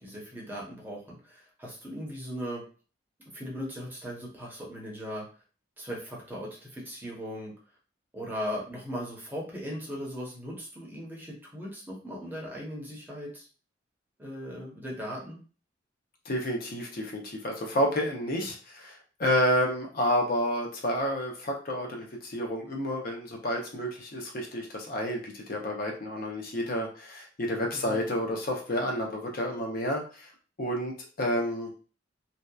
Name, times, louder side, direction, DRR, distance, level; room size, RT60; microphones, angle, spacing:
voice 1, 0.0-2.6 3.3-5.2 5.8-7.5 8.1-13.5 14.2-15.4 27.7-28.0, equal, 10° right, -4 dB, 0.7 m, -38 dB
voice 2, 16.3-30.3 30.6-31.7, equal, 50° left, 0 dB, 0.5 m, -30 dB
2.7 x 2.1 x 2.2 m, 0.38 s
head